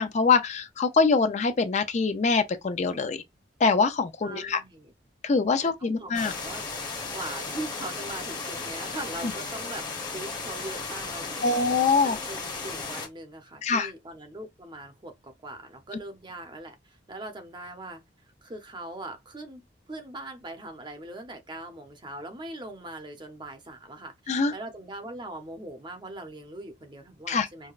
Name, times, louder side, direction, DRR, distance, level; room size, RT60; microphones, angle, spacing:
voice 1, 0.0-3.2 3.6-4.6 5.2-6.3 11.4-12.2 13.6-13.9 24.3-24.5 27.3-27.5, left 4 dB, 40° left, 0.4 m, -24 dB
voice 2, 4.2-4.9 5.6-6.6 7.1-9.9 10.1-11.5 12.0-18.0 18.4-27.7, right 2 dB, 25° right, 0.7 m, -41 dB
sound 1, 6.1-13.1, left 4 dB, 25° left, 1.0 m, -35 dB
4.7 x 2.2 x 2.4 m
head